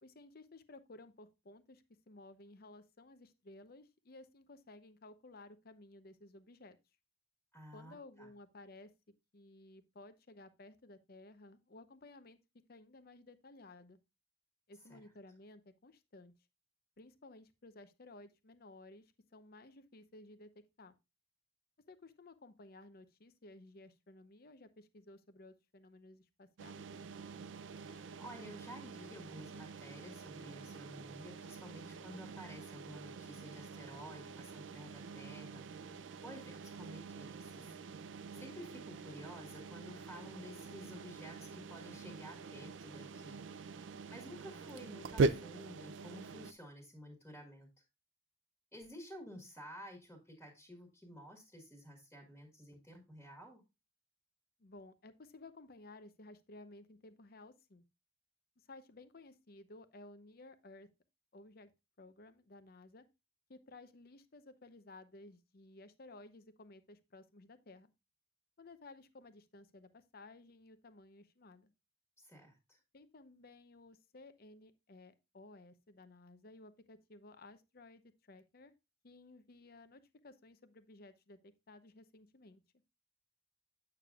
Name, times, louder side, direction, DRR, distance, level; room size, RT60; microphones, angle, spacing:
voice 1, 0.0-6.8 7.7-8.9 9.3-12.4 12.7-14.0 14.7-16.3 17.0-20.5 20.8-20.9 21.9-26.9 54.6-57.8 58.6-60.9 61.3-61.7 62.0-63.0 63.5-67.9 68.6-71.7 72.9-78.7 79.0-82.6, left 2 dB, 55° left, 0.7 m, -56 dB
voice 2, 7.5-8.3 14.9-15.0 27.8-37.8 38.3-43.4 44.1-47.7 48.7-53.6 72.2-72.8, equal, 10° left, 1.7 m, -52 dB
sound 1, 26.6-46.5, right 3 dB, 85° right, 0.5 m, -43 dB
8.5 x 6.7 x 2.4 m
head